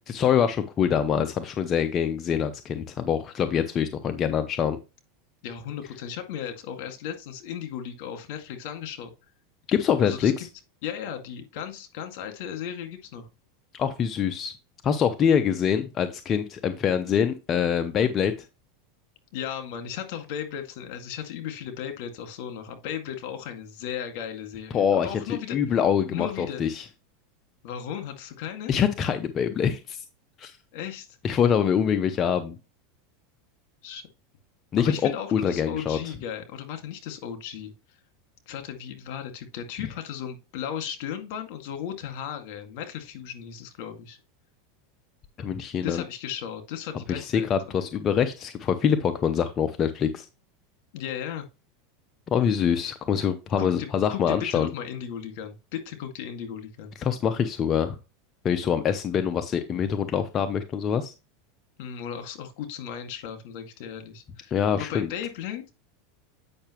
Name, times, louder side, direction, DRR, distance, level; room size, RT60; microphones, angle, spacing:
voice 1, 0.1-4.8 9.7-10.5 13.7-14.5 14.8-18.3 24.7-26.8 28.7-30.0 30.4-30.6 31.2-32.5 34.7-36.0 45.4-46.0 47.1-50.3 52.3-54.7 57.0-58.0 58.4-61.1 64.5-65.1, left 8 dB, 35° left, 0.7 m, -25 dB
voice 2, 5.4-9.1 10.0-10.5 10.8-13.3 19.3-25.6 26.0-26.6 27.6-28.7 30.7-31.1 33.8-34.1 34.8-37.7 38.5-44.2 45.8-47.5 47.8-47.9 50.9-51.4 53.6-56.9 61.8-65.6, left 9 dB, 65° left, 1.9 m, -36 dB
8.7 x 5.7 x 3.0 m
supercardioid pair, 120°, 0 cm